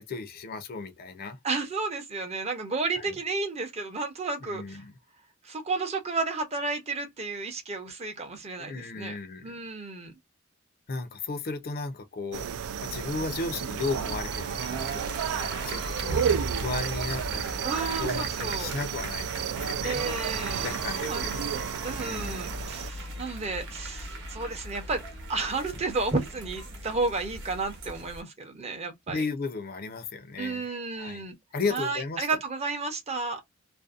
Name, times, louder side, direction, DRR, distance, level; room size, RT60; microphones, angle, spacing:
voice 1, 0.0-1.4 3.0-3.2 4.4-4.9 8.6-9.5 10.9-12.5 12.8-16.2 16.6-20.1 20.6-21.5 22.0-22.6 29.1-31.3 31.5-32.3, left 4 dB, 45° left, 0.5 m, -35 dB
voice 2, 1.4-4.8 5.4-9.2 9.4-10.1 17.6-18.7 19.8-25.0 25.3-29.2 30.4-31.4 31.7-33.4, right 3 dB, 30° right, 0.6 m, -32 dB
sound 1, 12.3-22.9, right 8 dB, 85° right, 0.3 m, -32 dB
sound 2, 13.9-28.2, right 1 dB, 60° right, 0.9 m, -38 dB
2.5 x 2.0 x 2.4 m
head